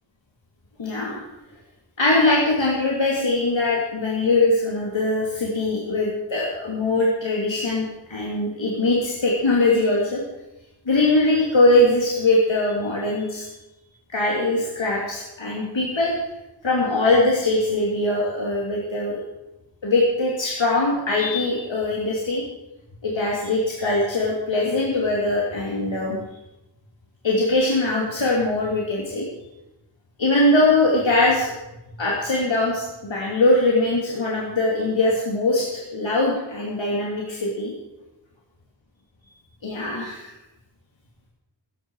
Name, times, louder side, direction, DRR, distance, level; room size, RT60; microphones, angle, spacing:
voice 1, 0.8-1.2 2.0-10.2 10.9-13.5 14.1-16.1 16.6-19.2 19.8-22.4 23.0-26.2 27.2-29.3 30.2-31.5 32.0-37.7 39.6-40.3, left 2 dB, 90° left, -4 dB, 2.8 m, -21 dB
16.5 x 15.0 x 4.8 m, 0.97 s
wide cardioid pair, 55°, 44 cm